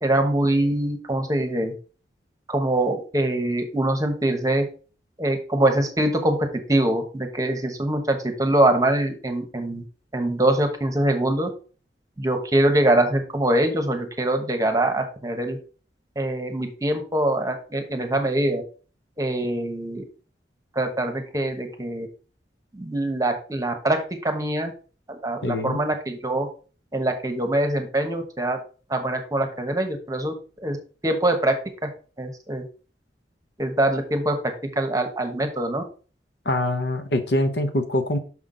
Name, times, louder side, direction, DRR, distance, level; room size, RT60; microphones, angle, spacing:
voice 1, 0.0-1.7 2.5-4.7 5.2-6.4 6.7-9.8 10.1-11.5 12.2-15.6 16.2-18.6 19.2-20.0 20.7-22.1 22.7-24.7 25.1-26.5 26.9-28.6 28.9-30.3 30.6-30.8 31.0-31.5 31.8-31.9 32.2-32.6 33.6-35.8, right 1 dB, 20° right, 6 dB, 1.0 m, -23 dB
voice 2, 25.4-25.8 36.4-38.2, left 1 dB, 75° left, 8 dB, 0.9 m, -24 dB
6.1 x 5.8 x 3.8 m, 0.38 s
head